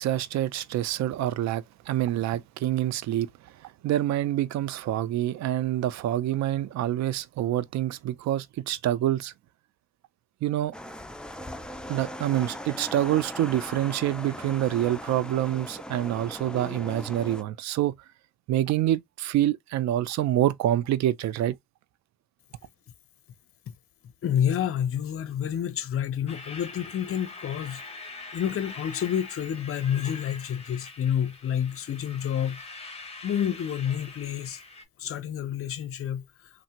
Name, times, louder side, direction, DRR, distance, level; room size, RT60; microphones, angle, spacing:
voice 1, 0.0-9.3 10.4-10.7 11.9-18.0 18.5-21.6, right 13 dB, 65° right, 0.4 m, -27 dB
sound 1, 10.7-17.4, left 1 dB, 5° left, 0.3 m, -39 dB
voice 2, 24.2-27.8 28.3-32.6 33.2-34.6 35.0-36.2, left 9 dB, 45° left, 0.6 m, -29 dB
sound 2, 26.3-34.8, left 3 dB, 20° left, 0.9 m, -43 dB
3.2 x 2.0 x 2.8 m
cardioid pair, 90°, 30 cm